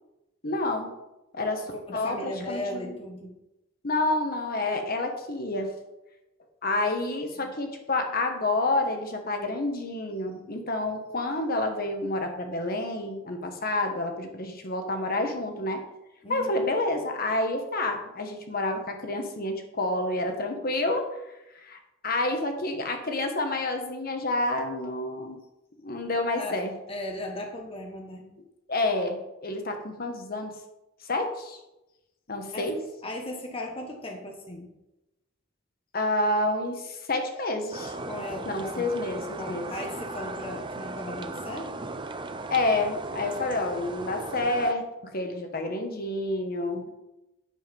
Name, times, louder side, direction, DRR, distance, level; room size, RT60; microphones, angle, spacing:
voice 1, 0.4-0.9 1.3-3.0 3.8-5.7 6.6-15.8 16.3-21.0 21.5-21.8 22.0-25.4 25.8-26.7 28.7-30.5 31.1-31.6 32.3-32.7 35.9-37.9 38.4-39.7 42.5-46.9, left 2 dB, 45° left, 4 dB, 1.3 m, -29 dB
voice 2, 1.6-3.3 7.4-7.5 16.2-16.7 26.4-26.6 26.9-28.3 32.5-32.7 33.0-34.7 38.1-38.9 39.4-41.9, left 1 dB, 30° left, 2 dB, 1.2 m, -37 dB
sound 1, 37.7-44.7, right 2 dB, 25° right, 0.6 m, -37 dB
8.9 x 7.2 x 5.2 m, 0.96 s
head